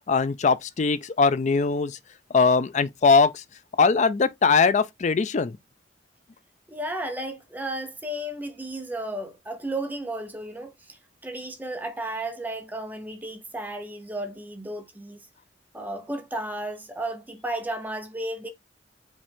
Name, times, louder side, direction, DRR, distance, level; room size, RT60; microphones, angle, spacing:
voice 1, 0.1-2.0 2.3-3.4 3.8-5.6, left 4 dB, 40° left, 0.4 m, -21 dB
voice 2, 6.7-15.2 15.7-18.5, right 1 dB, 10° right, 0.8 m, -33 dB
5.2 x 2.5 x 3.5 m
head